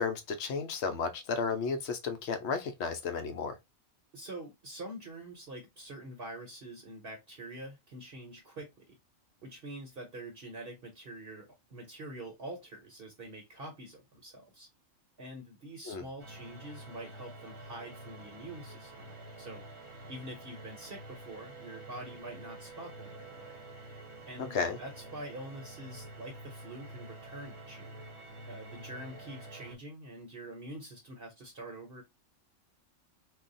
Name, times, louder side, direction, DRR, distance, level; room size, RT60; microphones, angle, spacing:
voice 1, 0.0-3.6 15.9-16.0 24.4-24.8, left 5 dB, 65° left, 0.9 m, -33 dB
voice 2, 4.1-9.0 9.4-14.7 15.2-19.7 20.1-23.6 24.3-28.0 28.5-32.0, right 1 dB, 50° right, 0.9 m, -45 dB
sound 1, 16.2-29.8, right 2 dB, 25° right, 0.9 m, -48 dB
2.4 x 2.2 x 3.9 m
omnidirectional pair, 1.3 m